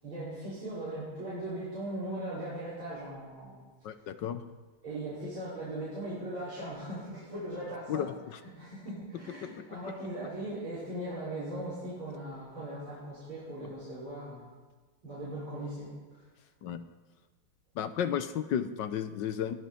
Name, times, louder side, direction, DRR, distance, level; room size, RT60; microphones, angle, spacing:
voice 1, 0.0-3.6 4.8-8.1 8.4-14.5 15.0-15.9, right 1 dB, 70° right, -12 dB, 6.4 m, -39 dB
voice 2, 3.8-4.4 7.9-8.4 9.6-9.7 16.6-16.9 17.7-19.5, left 9 dB, 65° left, 11 dB, 1.3 m, -33 dB
22.0 x 14.5 x 4.4 m, 1.3 s
omnidirectional pair, 2.3 m